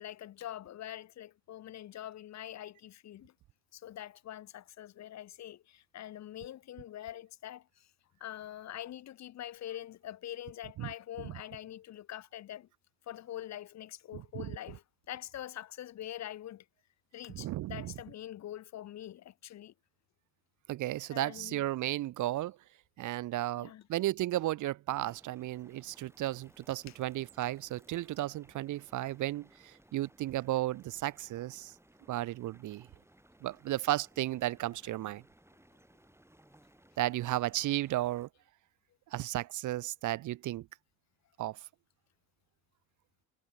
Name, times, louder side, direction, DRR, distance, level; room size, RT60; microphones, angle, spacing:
voice 1, 0.0-3.3 3.7-7.7 8.2-12.7 13.1-16.6 17.1-19.7 21.1-21.6 23.6-23.8 26.9-27.0, left 12 dB, 45° left, 0.6 m, -44 dB
voice 2, 14.1-14.5 17.3-17.9 20.7-22.6 23.0-31.7 32.1-32.9 33.4-35.2 37.0-38.3 39.1-40.7 41.4-41.6, right 15 dB, 50° right, 0.5 m, -34 dB
Guitar, 23.9-24.0, right 5 dB, 30° right, 3.8 m, -66 dB
sound 1, 24.9-38.3, right 1 dB, 5° right, 7.4 m, -63 dB
supercardioid pair, 60°, 39 cm